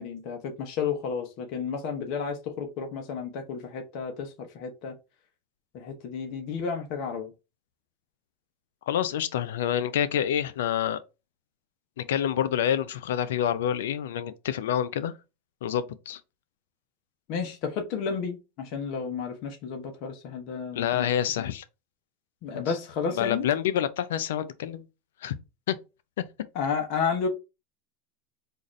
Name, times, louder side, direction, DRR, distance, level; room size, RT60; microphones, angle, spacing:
voice 1, 0.0-4.9 5.7-7.3 17.3-21.1 21.4-21.5 22.4-23.4 26.5-27.3, left 6 dB, 55° left, 0.9 m, -32 dB
voice 2, 8.9-11.0 12.0-15.1 15.6-16.2 20.7-21.6 22.5-22.7 23.1-24.8 25.2-25.4 25.7-25.8, left 10 dB, 85° left, 0.4 m, -27 dB
3.9 x 2.5 x 3.1 m
supercardioid pair, 115°, 0 cm